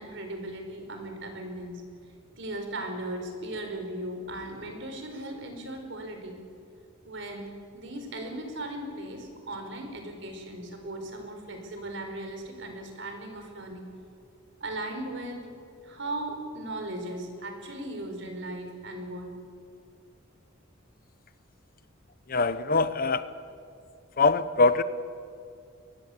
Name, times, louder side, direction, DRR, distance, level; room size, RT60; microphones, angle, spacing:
voice 1, 0.0-1.8 2.4-6.4 7.0-7.5 7.7-13.9 14.6-15.5 15.8-19.3, right 1 dB, 65° right, 4 dB, 5.0 m, -37 dB
voice 2, 22.3-23.3 24.2-24.8, left 3 dB, 45° left, 14 dB, 0.9 m, -23 dB
23.0 x 20.0 x 8.6 m, 2.4 s
head